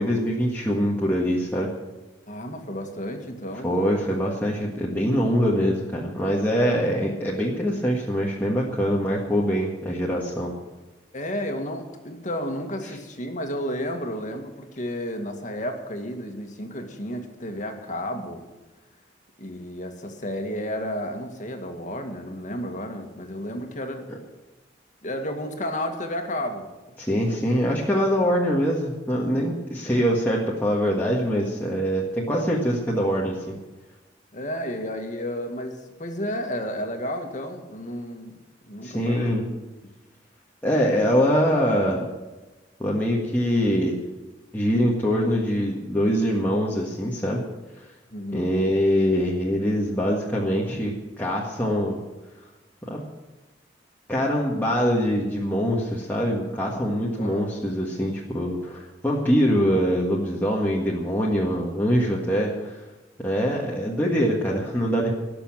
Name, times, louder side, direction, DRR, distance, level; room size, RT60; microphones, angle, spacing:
voice 1, 0.0-1.7 3.6-10.5 12.8-13.0 27.0-33.5 38.8-39.5 40.6-42.0 42.8-44.0 44.5-47.4 48.3-52.0 52.9-53.0 54.1-62.8 63.2-65.1, equal, 10° left, -4 dB, 1.7 m, -23 dB
voice 2, 2.3-3.7 11.1-18.5 19.4-24.1 25.0-26.7 27.2-27.4 34.3-38.4 38.6-39.4 39.8-39.9 48.1-48.5 57.2-57.4, equal, 45° left, 4 dB, 2.0 m, -32 dB
18.5 x 6.9 x 9.0 m, 1.1 s
head